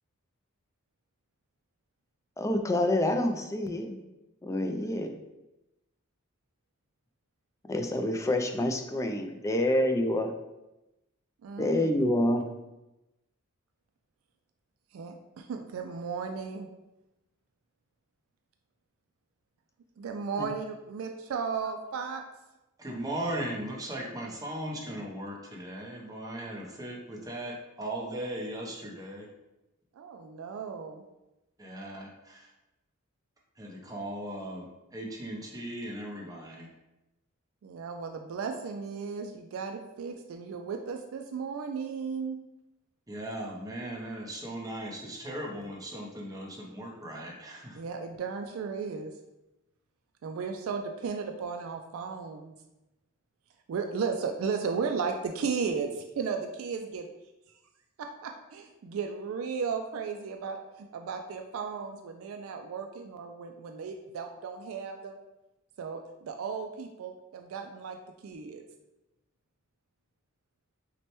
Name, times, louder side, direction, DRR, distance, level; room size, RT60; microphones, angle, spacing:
voice 1, 2.4-4.0 4.4-5.1 7.7-10.3 11.6-12.5 20.4-20.5, left 1 dB, 15° left, 5 dB, 0.3 m, -27 dB
voice 2, 11.4-11.9 14.9-16.7 20.0-22.2 30.0-31.0 37.6-42.4 47.7-49.1 50.2-52.5 53.7-57.1 58.0-65.2 65.8-68.0 68.2-68.6, right 5 dB, 70° right, 4 dB, 0.3 m, -35 dB
voice 3, 22.8-29.3 31.6-32.5 33.6-36.7 43.1-47.8, right 1 dB, 15° right, -2 dB, 0.7 m, -38 dB
6.0 x 2.2 x 3.0 m, 0.97 s
head